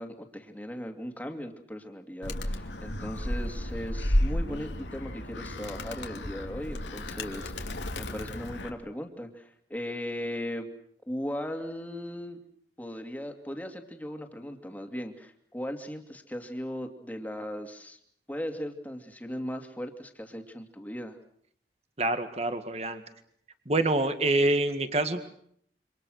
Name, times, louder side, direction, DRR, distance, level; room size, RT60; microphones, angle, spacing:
voice 1, 0.0-10.7 11.1-12.4 12.8-18.0 18.3-21.2, equal, 10° left, 4 dB, 2.6 m, -38 dB
Animal, 2.2-8.7, left 1 dB, 85° left, 2.8 m, -32 dB
voice 2, 22.0-23.0 23.7-25.2, right 2 dB, 35° right, 9 dB, 1.9 m, -26 dB
28.0 x 26.0 x 6.5 m, 0.67 s
head